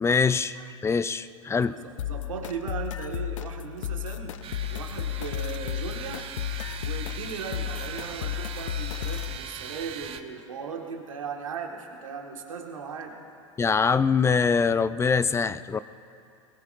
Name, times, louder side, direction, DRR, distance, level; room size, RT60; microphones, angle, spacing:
voice 1, 0.0-1.8 13.6-15.8, left 5 dB, 15° left, 15 dB, 0.5 m, -23 dB
voice 2, 1.7-4.4 4.6-6.3 6.8-13.2, right 6 dB, 85° right, 1 dB, 1.8 m, -37 dB
sound 1, 2.0-9.4, left 12 dB, 75° left, 0.5 m, -33 dB
sound 2, 4.4-10.2, right 7 dB, 35° right, 1.0 m, -40 dB
23.0 x 20.0 x 2.6 m, 2.5 s
hypercardioid pair, 85°, 17 cm